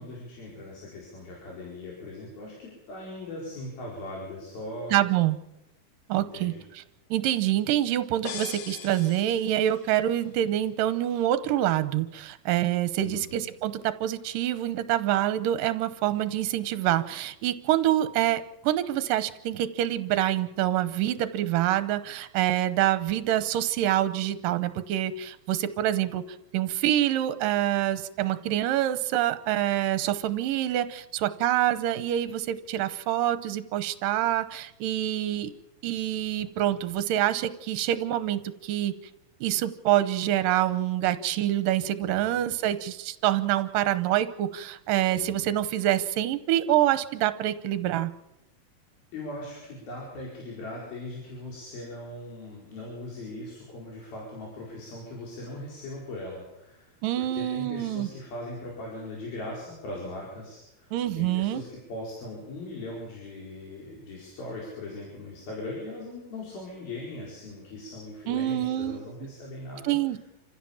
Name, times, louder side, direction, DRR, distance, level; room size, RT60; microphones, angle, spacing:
voice 1, 0.0-5.0 6.1-6.6 13.0-13.5 42.0-42.5 45.1-45.5 49.1-70.2, left 2 dB, 80° left, -3 dB, 6.5 m, -40 dB
voice 2, 4.9-5.4 6.1-6.5 7.1-26.2 26.5-35.5 35.8-38.9 39.4-48.1 57.0-58.1 60.9-61.6 68.3-69.0 69.8-70.2, right 12 dB, 75° right, 13 dB, 2.6 m, -26 dB
sound 1, 8.2-10.0, left 7 dB, 60° left, 2.5 m, -40 dB
27.5 x 15.5 x 7.2 m, 0.90 s
omnidirectional pair, 4.2 m